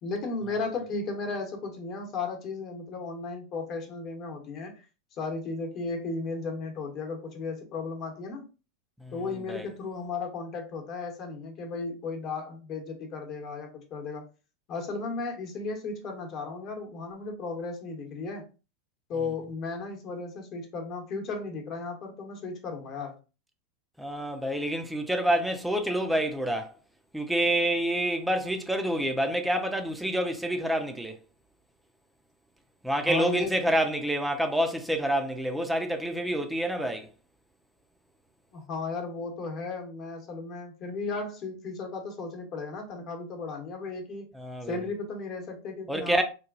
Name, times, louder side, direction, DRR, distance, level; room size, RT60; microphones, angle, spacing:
voice 1, 0.0-4.8 5.2-8.5 9.1-14.2 14.7-18.4 19.1-23.1 33.1-33.5 38.5-44.3 44.7-46.2, left 4 dB, 45° left, 0.9 m, -35 dB
voice 2, 24.0-26.7 27.1-31.2 32.8-37.1 44.4-44.8 45.9-46.2, right 1 dB, 5° right, 0.5 m, -27 dB
2.9 x 2.2 x 2.4 m
hypercardioid pair, 90°, 0 cm